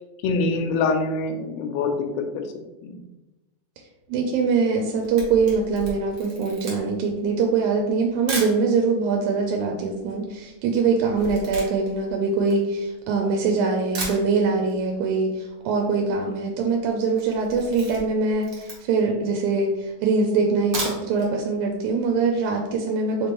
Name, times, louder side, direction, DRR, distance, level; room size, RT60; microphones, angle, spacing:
voice 1, 0.2-2.5 2.8-3.0, left 3 dB, 80° left, 4 dB, 1.6 m, -25 dB
voice 2, 4.1-23.3, right 4 dB, 80° right, 2 dB, 1.9 m, -23 dB
Camera, 4.8-8.6 9.3-9.4 9.6-13.3 13.6-13.7 13.9-14.8 15.1-15.2 15.5-15.6 15.7-16.2 16.5-16.7 17.1-19.1 19.6-19.7 20.5-21.3 21.7-21.8 22.1-22.2, right 2 dB, 60° right, 1.2 m, -35 dB
4.4 x 3.5 x 2.9 m, 1.0 s
omnidirectional pair, 3.5 m